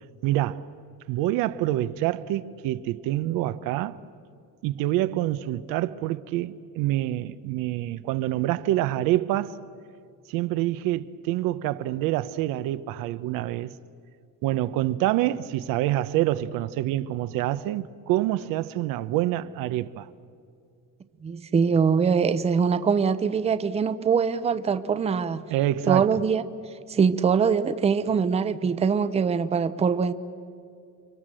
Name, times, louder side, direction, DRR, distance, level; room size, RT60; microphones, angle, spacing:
voice 1, 0.2-0.7 1.1-4.0 4.6-9.6 10.3-13.7 14.4-20.1 25.5-26.1, right 14 dB, 80° right, 0.9 m, -26 dB
voice 2, 21.2-25.4 25.9-26.4 26.9-30.1, right 6 dB, 20° right, 0.7 m, -23 dB
30.0 x 24.0 x 7.6 m
cardioid pair, 150°, 33 cm